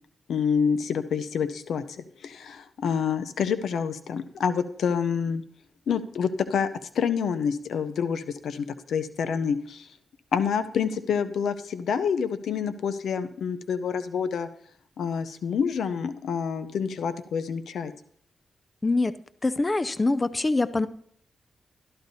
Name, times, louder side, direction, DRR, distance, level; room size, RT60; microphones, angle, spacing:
voice 1, 0.3-5.4 5.9-6.7 6.9-9.9 10.3-14.5 15.0-17.9, left 6 dB, 80° left, 12 dB, 0.6 m, -27 dB
voice 2, 18.8-19.1 19.4-20.9, left 2 dB, 30° left, 14 dB, 0.5 m, -24 dB
12.5 x 12.0 x 2.7 m, 0.63 s
cardioid pair, 55°, 0 cm